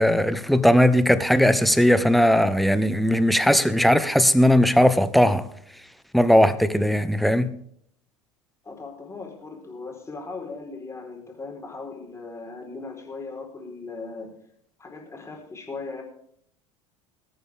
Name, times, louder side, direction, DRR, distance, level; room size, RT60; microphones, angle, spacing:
voice 1, 0.0-5.5 6.1-7.5, equal, ahead, 1.0 m, -18 dB
voice 2, 8.6-14.3 14.8-16.0, left 4 dB, 15° left, 4.4 m, -38 dB
21.0 x 9.4 x 3.6 m
figure-of-eight pair, 75°, 17 cm